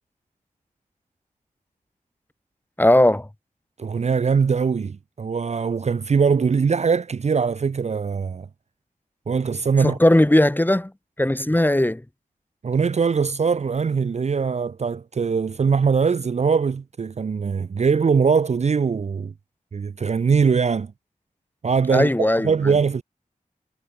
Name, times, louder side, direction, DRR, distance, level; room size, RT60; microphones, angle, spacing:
voice 1, 2.8-3.3 9.8-10.9 11.2-12.0 21.9-22.8, left 1 dB, 15° left, 1.9 m, -18 dB
voice 2, 3.8-8.5 9.3-10.0 12.6-19.3 19.7-20.9 21.6-23.0, right 5 dB, 50° right, 0.4 m, -21 dB
wide cardioid pair, 75°, 15 cm